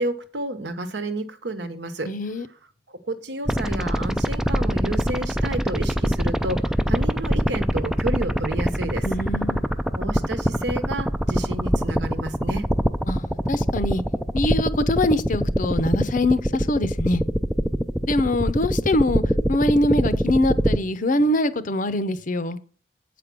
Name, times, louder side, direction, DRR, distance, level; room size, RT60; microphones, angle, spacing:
voice 1, 0.0-2.1 2.9-9.1 10.0-12.7, right 2 dB, 70° right, 1.1 m, -30 dB
voice 2, 2.0-2.5 9.0-9.8 13.1-14.0 14.3-17.2 18.0-19.2 19.5-22.6, left 1 dB, 50° left, 0.7 m, -23 dB
sound 1, 3.5-20.8, equal, ahead, 0.4 m, -23 dB
8.2 x 5.1 x 6.1 m
head